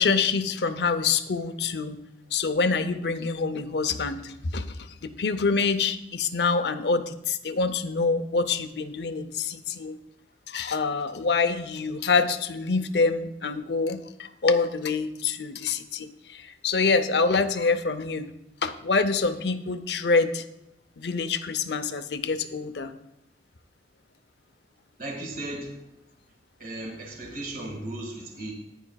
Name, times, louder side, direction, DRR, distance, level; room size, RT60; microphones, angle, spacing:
voice 1, 0.0-2.0 2.3-10.0 10.5-18.3 18.6-20.4 21.0-22.9, left 4 dB, 65° left, 11 dB, 0.6 m, -26 dB
voice 2, 25.0-25.8 26.6-28.5, right 1 dB, 55° right, 0 dB, 1.8 m, -36 dB
14.0 x 9.9 x 2.3 m, 0.86 s
head